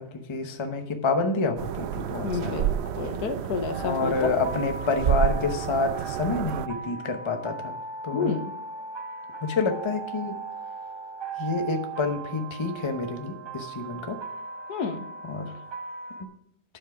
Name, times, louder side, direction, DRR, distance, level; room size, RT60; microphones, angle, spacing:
voice 1, 0.0-2.7 3.8-7.7 8.0-8.4 9.4-10.4 11.4-14.2 15.2-15.5, left 3 dB, 25° left, 6 dB, 0.8 m, -28 dB
sound 1, 1.6-6.7, right 10 dB, 85° right, 0.5 m, -30 dB
voice 2, 2.2-4.1 8.1-8.5 14.7-15.0, left 5 dB, 75° left, 9 dB, 1.4 m, -30 dB
sound 2, 3.7-16.2, right 5 dB, 30° right, 0.5 m, -38 dB
10.0 x 7.4 x 4.9 m, 0.67 s
omnidirectional pair, 1.7 m